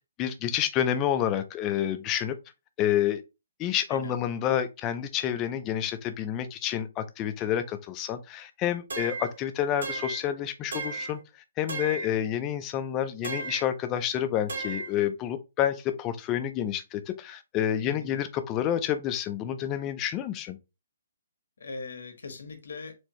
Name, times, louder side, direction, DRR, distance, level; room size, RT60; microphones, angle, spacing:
voice 1, 0.2-2.4 2.8-3.2 3.6-20.6, left 10 dB, 20° left, 0.4 m, -29 dB
sound 1, 8.9-9.4 9.8-10.3 10.7-11.2 11.7-12.1 13.2-13.7 14.5-14.9, right 3 dB, 85° right, 2.2 m, -34 dB
voice 2, 17.8-18.2 21.6-22.9, left 4 dB, 80° left, 1.3 m, -40 dB
4.3 x 2.7 x 3.0 m
hypercardioid pair, 170°, 0 cm